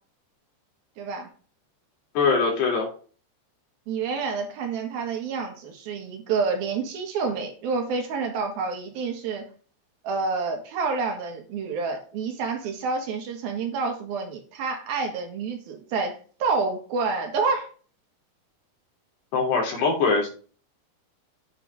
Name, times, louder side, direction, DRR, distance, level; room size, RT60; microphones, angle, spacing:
voice 1, 1.0-1.3 3.9-9.4 10.0-17.7, right 4 dB, 65° right, 3 dB, 3.5 m, -28 dB
voice 2, 2.2-2.9 19.3-20.3, left 4 dB, 85° left, -1 dB, 5.4 m, -22 dB
8.8 x 8.4 x 3.7 m, 0.40 s
omnidirectional pair, 4.7 m